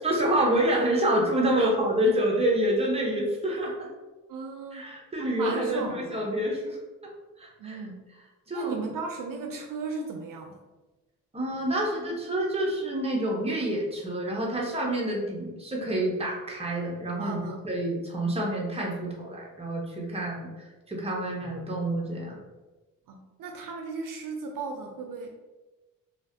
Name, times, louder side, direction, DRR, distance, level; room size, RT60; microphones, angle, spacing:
voice 1, 0.0-3.9 4.7-6.8 7.4-7.8 8.5-8.8 11.3-20.5 20.9-22.4, right 1 dB, 15° right, -2 dB, 1.0 m, -27 dB
voice 2, 4.3-4.9 5.2-6.3 7.6-8.0 8.5-10.6 17.2-17.7 23.1-25.4, right 4 dB, 70° right, 2 dB, 0.5 m, -36 dB
3.1 x 2.5 x 2.7 m, 1.2 s
cardioid pair, 70°, 35 cm